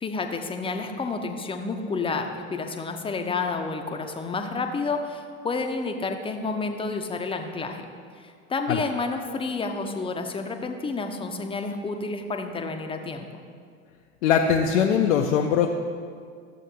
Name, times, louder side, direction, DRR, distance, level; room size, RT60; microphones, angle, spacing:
voice 1, 0.0-7.8 8.2-13.3, left 4 dB, 15° left, 5 dB, 0.7 m, -30 dB
voice 2, 14.2-15.7, left 8 dB, 60° left, 2 dB, 0.7 m, -21 dB
14.0 x 7.2 x 2.8 m, 2.1 s
figure-of-eight pair, 80°, 40 cm